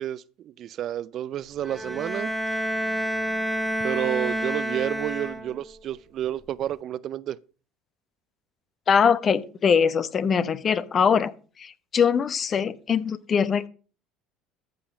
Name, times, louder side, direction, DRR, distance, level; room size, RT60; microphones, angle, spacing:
voice 1, 0.0-2.3 3.8-7.4, right 11 dB, 50° right, 0.5 m, -30 dB
Bowed string instrument, 1.6-5.7, equal, ahead, 2.1 m, -29 dB
voice 2, 8.9-11.3 11.6-13.7, left 6 dB, 40° left, 1.0 m, -22 dB
14.0 x 5.8 x 6.3 m
hypercardioid pair, 70°, 0 cm